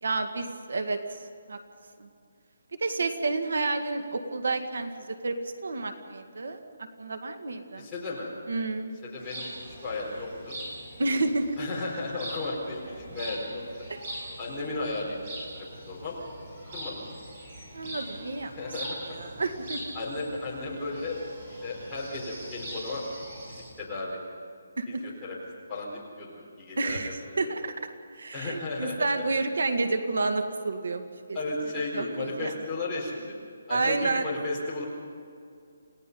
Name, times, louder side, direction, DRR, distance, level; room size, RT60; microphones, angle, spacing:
voice 1, 0.0-1.2 1.5-1.6 2.0-2.1 2.8-5.4 5.6-6.6 7.0-7.9 8.5-8.9 11.0-11.6 13.9-14.0 17.7-18.5 19.1-19.9 24.8-25.1 26.8-27.7 28.2-31.4 31.9-32.5 33.7-34.3, right 3 dB, 70° right, 7 dB, 1.9 m, -30 dB
voice 2, 7.8-8.3 9.0-10.6 11.6-13.6 14.4-15.2 15.5-16.2 16.7-17.0 18.6-19.1 19.9-21.2 21.6-23.0 23.5-24.2 24.9-25.4 25.7-27.5 28.3-29.1 31.3-33.3 33.7-34.8, left 2 dB, 5° left, -9 dB, 4.3 m, -34 dB
sound 1, 9.2-23.7, right 1 dB, 30° right, 6.8 m, -42 dB
29.0 x 17.5 x 5.4 m, 2.3 s
hypercardioid pair, 180°, 0 cm